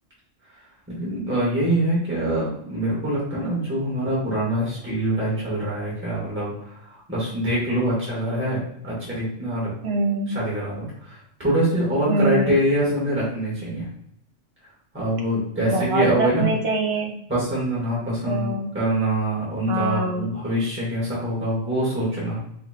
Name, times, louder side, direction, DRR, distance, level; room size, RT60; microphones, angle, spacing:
voice 1, 0.9-9.7 10.3-13.9 14.9-16.4 17.3-22.4, right 1 dB, 10° right, -7 dB, 1.6 m, -24 dB
voice 2, 9.8-10.3 12.1-12.6 15.6-17.1 18.2-18.7 19.7-20.2, right 2 dB, 60° right, 1 dB, 1.1 m, -24 dB
5.6 x 2.4 x 2.8 m, 0.73 s
omnidirectional pair, 1.2 m